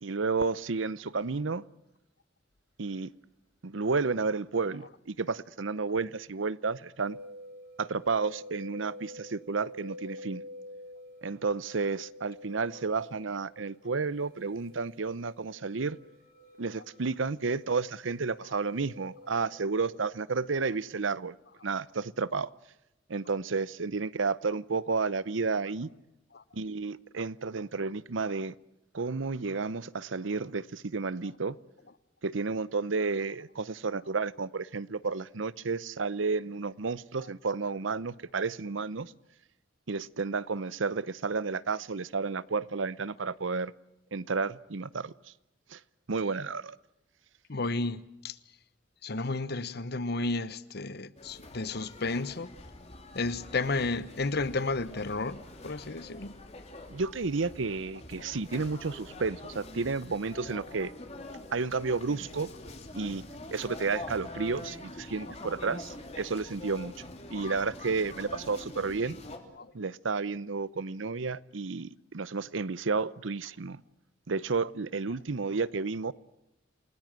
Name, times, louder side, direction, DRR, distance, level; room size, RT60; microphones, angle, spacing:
voice 1, 0.0-1.6 2.8-3.1 3.6-7.2 7.8-10.4 11.2-16.0 16.6-21.4 21.6-22.5 23.1-25.9 26.5-28.5 28.9-31.6 32.2-39.1 39.9-43.7 44.1-45.1 45.7-45.8 46.1-46.8 56.9-60.9 61.5-62.5 62.9-63.2 63.5-66.9 67.3-69.2 69.7-73.8 74.3-76.1, right 4 dB, 75° right, 0.8 m, -31 dB
sound 1, 7.0-20.0, left 1 dB, 55° right, 4.8 m, -49 dB
voice 2, 47.5-48.4 49.0-52.5 53.1-56.3 58.2-58.4 69.6-69.7, left 3 dB, 55° left, 1.0 m, -32 dB
sound 2, 51.2-69.4, left 2 dB, 35° left, 3.0 m, -45 dB
29.0 x 19.0 x 7.6 m
head